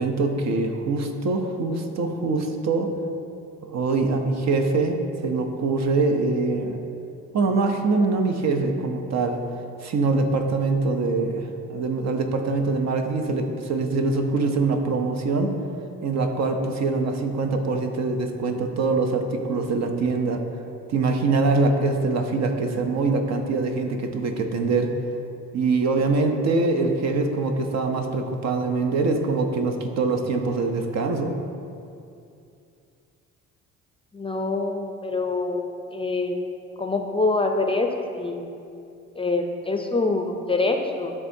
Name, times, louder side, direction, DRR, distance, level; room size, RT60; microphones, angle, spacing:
voice 1, 0.0-2.9 3.6-6.8 7.3-9.4 9.8-15.5 16.0-20.4 20.9-25.0 25.5-31.4, right 3 dB, 60° right, 5 dB, 0.7 m, -24 dB
voice 2, 34.1-36.4 36.8-37.9 38.1-38.5 39.2-41.1, left 3 dB, 15° left, 3 dB, 0.5 m, -25 dB
10.5 x 3.5 x 2.7 m, 2.6 s
supercardioid pair, 70°, 31 cm